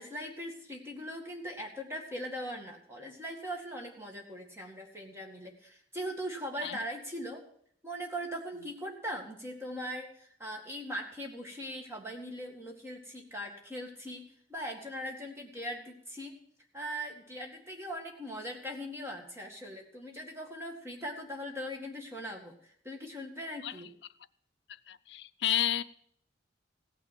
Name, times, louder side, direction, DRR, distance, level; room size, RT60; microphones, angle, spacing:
voice 1, 0.0-7.4 7.8-16.3 16.7-23.9, equal, 15° right, 1.9 m, -40 dB
voice 2, 24.9-25.8, left 11 dB, 65° left, 0.5 m, -31 dB
16.5 x 6.2 x 7.5 m
head